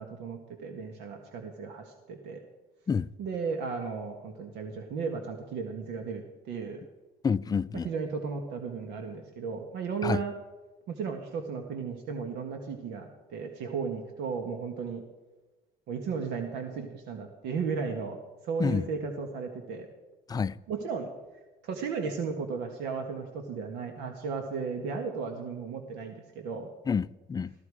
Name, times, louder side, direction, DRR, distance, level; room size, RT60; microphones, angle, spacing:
voice 1, 0.0-2.4 3.2-6.8 7.7-10.3 10.9-15.0 15.9-18.2 18.4-19.9 20.7-21.1 21.6-26.7, right 5 dB, 85° right, 1.6 m, -35 dB
voice 2, 7.2-7.9 10.0-10.2 18.6-18.8 20.3-20.6 26.9-27.5, left 6 dB, 25° left, 0.4 m, -28 dB
16.0 x 14.5 x 4.9 m
cardioid pair, 110°, 17 cm